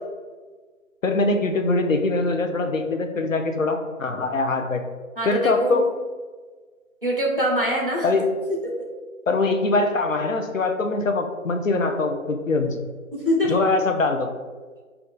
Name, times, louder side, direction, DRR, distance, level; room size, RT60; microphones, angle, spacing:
voice 1, 1.0-4.8 5.2-5.8 8.0-8.3 9.3-12.8 13.5-14.3, left 3 dB, 65° left, 5 dB, 0.5 m, -23 dB
voice 2, 5.2-5.8 7.0-8.0 13.1-13.6, equal, 40° right, -3 dB, 0.7 m, -23 dB
2.7 x 2.3 x 3.6 m, 1.4 s
figure-of-eight pair, 175°, 42 cm